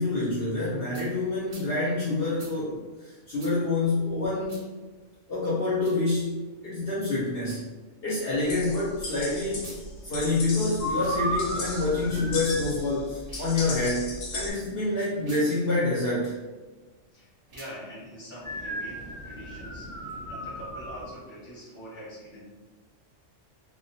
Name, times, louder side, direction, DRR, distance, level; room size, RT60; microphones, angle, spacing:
voice 1, 0.0-4.6 5.3-7.6 8.0-9.7 10.0-16.3, left 2 dB, 60° left, -7 dB, 0.7 m, -27 dB
sound 1, 0.9-1.1 1.5-1.7 2.4-2.5 3.4-3.5 4.5-4.6 5.7-6.0 7.4-7.6 9.5-9.8 10.9-11.2 13.2-13.5 15.2-15.4 17.4-17.8, right 3 dB, 70° right, 0.3 m, -48 dB
sound 2, 8.4-14.5, left 2 dB, 85° left, 1.0 m, -37 dB
sound 3, 10.8-12.8 18.4-21.1, equal, 20° right, 0.6 m, -34 dB
voice 2, 17.1-22.5, equal, 10° left, -9 dB, 0.8 m, -44 dB
2.2 x 2.1 x 2.6 m, 1.3 s
omnidirectional pair, 1.3 m